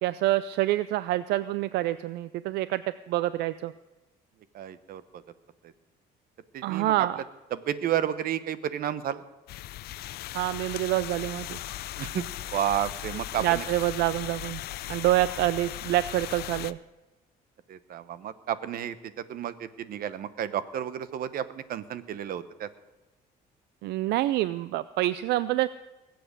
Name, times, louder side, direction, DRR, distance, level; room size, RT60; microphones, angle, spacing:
voice 1, 0.0-2.8 3.1-3.7 6.6-7.2 10.3-11.6 13.4-14.6 14.9-16.8 23.8-25.7, right 15 dB, 80° right, 15 dB, 0.4 m, -26 dB
voice 2, 4.5-5.0 6.5-7.1 7.5-9.2 12.0-12.2 12.5-13.6 17.7-22.7, right 10 dB, 60° right, 14 dB, 0.9 m, -31 dB
sound 1, 9.5-16.7, left 14 dB, 70° left, 0.5 m, -38 dB
20.5 x 7.8 x 6.6 m, 1.1 s
cardioid pair, 110°, 17 cm